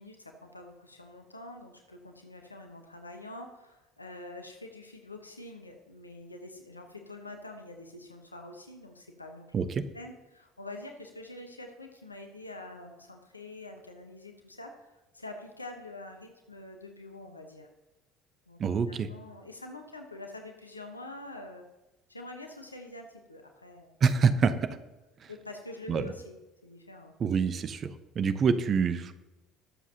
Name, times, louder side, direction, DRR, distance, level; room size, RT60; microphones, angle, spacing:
voice 1, 0.0-9.6 9.9-17.7 18.5-18.6 18.9-21.7 22.1-24.3 24.6-24.7 25.3-27.1, left 2 dB, 90° left, 4 dB, 1.0 m, -46 dB
voice 2, 18.6-19.1 24.0-24.5 25.9-26.1 27.2-27.9 28.1-29.1, right 6 dB, 40° right, 12 dB, 0.8 m, -25 dB
20.5 x 7.3 x 2.8 m, 1.0 s
figure-of-eight pair, 60°, 0 cm